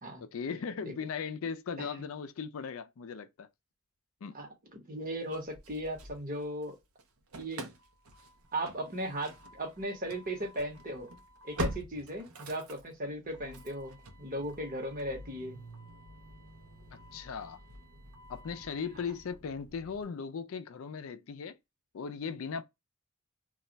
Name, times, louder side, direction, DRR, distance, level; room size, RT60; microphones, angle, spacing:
voice 1, 0.2-3.5 4.2-4.4 17.1-17.6 18.3-21.6 21.9-22.6, left 6 dB, 70° left, 0.4 m, -38 dB
voice 2, 4.9-6.7 7.4-7.7 8.5-11.1 11.4-15.6, right 1 dB, 40° right, 1.0 m, -37 dB
Engine starting / Slam, 5.3-6.7 7.0-20.0, right 1 dB, 80° right, 0.6 m, -45 dB
2.3 x 2.1 x 3.8 m
head